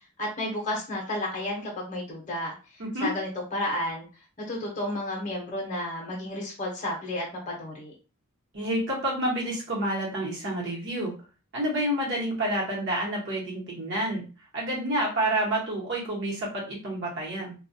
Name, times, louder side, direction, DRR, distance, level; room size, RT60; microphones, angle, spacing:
voice 1, 0.2-2.5 3.0-4.0 4.5-7.9, left 1 dB, 35° left, -2 dB, 0.7 m, -32 dB
voice 2, 2.8-3.1 8.5-11.1 11.5-14.3 14.5-17.5, right 1 dB, 55° right, -4 dB, 1.0 m, -29 dB
2.2 x 2.2 x 2.6 m, 0.34 s
head